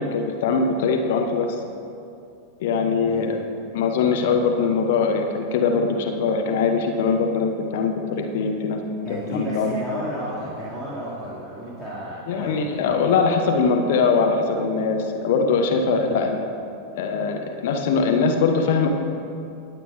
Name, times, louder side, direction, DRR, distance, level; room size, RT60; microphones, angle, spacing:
voice 1, 0.0-1.5 2.6-3.4 3.7-8.8 9.1-9.7 12.3-16.4 16.9-18.9, left 5 dB, 55° left, 4 dB, 0.8 m, -22 dB
voice 2, 9.0-13.1 16.0-16.2, equal, 5° right, -10 dB, 2.2 m, -33 dB
18.5 x 7.9 x 2.5 m, 2.6 s
figure-of-eight pair, 90°, 0 cm